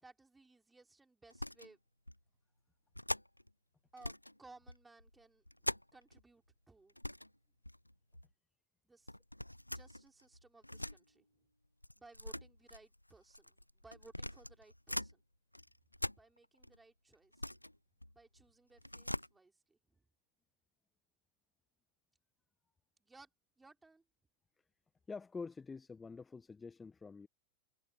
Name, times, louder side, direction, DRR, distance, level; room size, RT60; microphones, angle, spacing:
voice 1, 0.0-1.8 3.9-4.1 4.4-5.4 5.9-6.9 8.8-9.2 9.7-11.3 12.0-15.2 16.2-17.6 18.1-20.0 23.0-23.3 23.6-24.0, right 3 dB, 10° right, 5.8 m, -61 dB
sound 1, 1.3-1.7 2.1-2.2 3.0-3.5 4.0-4.4 4.7-6.2 6.5-6.6 6.9-7.3 7.6-8.3 9.1-11.0 11.8-15.1 15.5-16.8 17.1-18.4 18.7-19.3, left 1 dB, 90° left, 0.4 m, -43 dB
voice 2, 25.1-27.3, left 4 dB, 15° left, 1.4 m, -47 dB
figure-of-eight pair, 90°, 0 cm